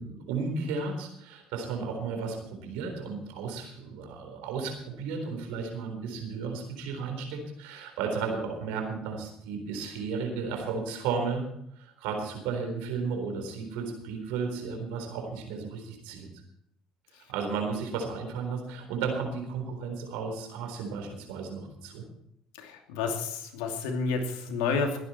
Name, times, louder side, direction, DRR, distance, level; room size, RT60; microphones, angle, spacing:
voice 1, 0.0-11.4 11.8-16.3 17.3-22.0, right 5 dB, 80° right, 4 dB, 4.0 m, -34 dB
voice 2, 22.6-25.0, left 4 dB, 85° left, 4 dB, 2.7 m, -30 dB
21.0 x 10.0 x 4.4 m, 0.74 s
hypercardioid pair, 65°, 3 cm